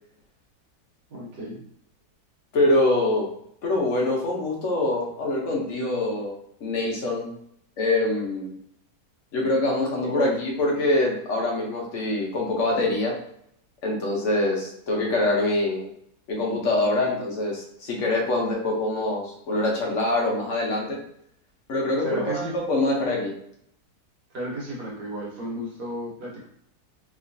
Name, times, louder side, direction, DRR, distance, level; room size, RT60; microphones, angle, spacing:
voice 1, 1.1-1.6 10.0-10.4 17.0-17.1 22.0-22.5 24.3-26.5, equal, 70° right, -4 dB, 1.6 m, -33 dB
voice 2, 2.5-3.3 3.6-6.3 6.6-7.3 7.8-8.5 9.3-13.2 13.8-15.9 16.3-21.0 21.7-23.3, left 2 dB, 55° left, -2 dB, 0.9 m, -24 dB
3.2 x 2.9 x 2.6 m, 0.70 s
omnidirectional pair, 1.9 m